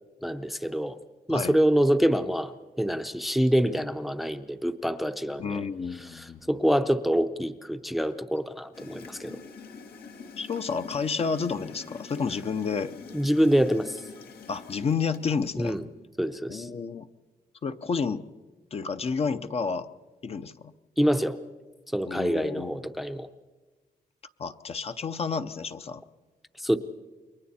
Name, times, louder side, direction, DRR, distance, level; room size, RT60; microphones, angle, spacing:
voice 1, 0.2-1.0 1.3-2.5 2.8-5.6 6.1-9.4 13.1-14.0 15.6-15.8 16.2-16.7 21.0-21.4 21.9-23.3 26.6-26.8, equal, ahead, 10 dB, 0.6 m, -26 dB
voice 2, 5.4-6.4 10.4-12.9 14.5-15.8 16.5-17.1 17.6-18.2 18.7-19.9 20.2-20.7 22.1-22.9 24.4-26.0, left 5 dB, 40° left, 9 dB, 0.7 m, -30 dB
Gurgling / Toilet flush, 8.7-15.8, left 5 dB, 85° left, 1.8 m, -46 dB
29.0 x 22.5 x 4.3 m, 1.3 s
wide cardioid pair, 170°, 16 cm